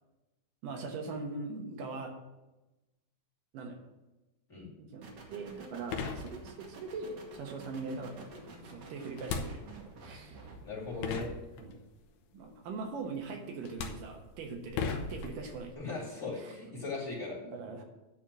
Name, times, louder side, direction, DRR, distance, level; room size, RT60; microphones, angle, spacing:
voice 1, 0.6-2.2 3.5-3.8 4.8-10.4 11.6-11.8 12.3-15.8 16.4-16.5 17.4-17.8, right 3 dB, 80° right, 3 dB, 2.8 m, -41 dB
sound 1, 5.0-11.4, right 3 dB, 55° right, 2.1 m, -51 dB
sound 2, 5.5-5.6 5.9-6.8 9.2-10.0 10.7-10.8 11.0-12.0 13.0-13.3 13.6-15.7, left 5 dB, 70° left, 1.8 m, -38 dB
voice 2, 10.6-11.3 15.7-17.4, left 3 dB, 25° left, -3 dB, 2.6 m, -38 dB
10.0 x 4.5 x 7.3 m, 1.0 s
omnidirectional pair, 3.8 m